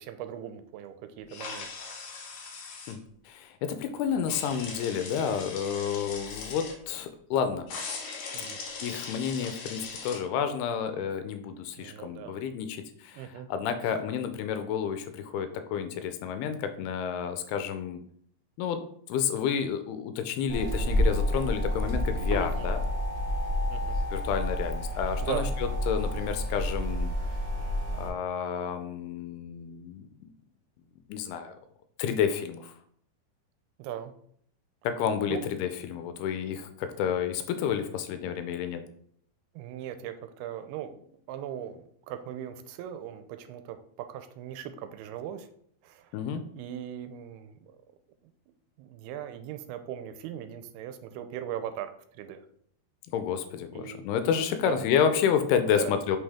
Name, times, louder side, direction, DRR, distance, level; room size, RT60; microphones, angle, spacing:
voice 1, 0.0-1.7 8.3-8.6 11.8-12.3 13.1-13.5 22.4-22.7 23.7-24.0 25.2-25.6 33.8-34.1 35.3-35.5 39.6-41.0 41.3-45.5 45.8-46.2 46.5-47.7 48.2-52.5 53.7-54.1 54.6-54.8 55.7-55.9, right 10 dB, 85° right, 10 dB, 2.4 m, -39 dB
sound 1, 1.3-2.9 4.3-6.7 7.7-10.2, left 4 dB, 65° left, 2.5 m, -39 dB
voice 2, 3.3-7.7 8.8-18.0 18.6-18.8 19.1-22.8 24.1-27.1 27.9-30.1 31.1-31.6 32.0-32.7 34.8-38.8 46.1-46.4 53.1-56.2, left 7 dB, 85° left, 9 dB, 2.5 m, -30 dB
sound 2, 20.5-28.1, left 1 dB, 15° right, 1.2 m, -29 dB
5.7 x 5.3 x 3.5 m, 0.64 s
omnidirectional pair, 4.6 m